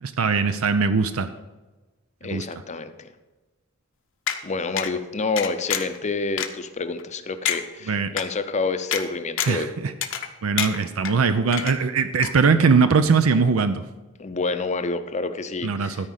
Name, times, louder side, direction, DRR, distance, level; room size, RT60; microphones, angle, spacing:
voice 1, 0.0-1.3 2.2-2.5 7.9-8.1 9.5-9.9 10.4-13.8 15.6-16.1, right 5 dB, 75° right, 10 dB, 0.5 m, -21 dB
voice 2, 2.2-3.1 4.4-9.7 14.2-16.1, left 3 dB, 35° left, 10 dB, 0.6 m, -28 dB
sound 1, 4.3-4.4 4.8-4.9 5.4-6.0 6.4-6.5 7.0-7.1 7.4-7.6 8.2-8.3 8.9-9.0 9.4-9.6 10.0-10.3 10.6-11.1 11.5-12.0 12.2-12.3, left 9 dB, 60° left, 0.9 m, -26 dB
13.0 x 4.9 x 7.3 m, 1.2 s
head